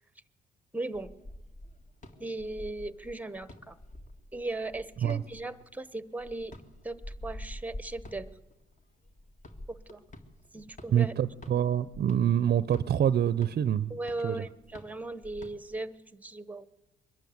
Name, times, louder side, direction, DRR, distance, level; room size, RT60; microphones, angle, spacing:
voice 1, 0.7-1.1 2.2-3.8 4.3-6.6 6.8-8.3 9.7-10.0 10.5-11.1 13.9-16.7, right 2 dB, 10° right, 16 dB, 0.9 m, -37 dB
sound 1, 0.9-15.9, left 1 dB, 40° left, 1.9 m, -48 dB
voice 2, 10.9-13.9 14.2-14.4, right 9 dB, 50° right, 16 dB, 0.6 m, -26 dB
22.0 x 12.5 x 9.5 m, 1.0 s
cardioid pair, 90°, 20 cm